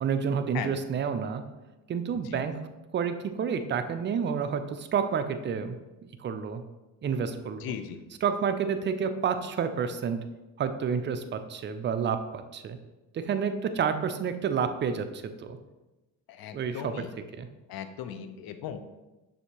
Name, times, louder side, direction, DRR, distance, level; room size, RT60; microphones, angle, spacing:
voice 1, 0.0-1.4 1.9-2.5 2.9-5.8 6.2-6.6 7.0-7.8 8.2-10.2 10.6-12.8 13.1-15.6 16.5-17.5, right 6 dB, 25° right, 9 dB, 0.3 m, -29 dB
voice 2, 7.6-8.0 16.3-17.1 17.7-18.8, left 8 dB, 50° left, 9 dB, 0.6 m, -37 dB
6.4 x 2.7 x 2.9 m, 1.1 s
hypercardioid pair, 55°, 49 cm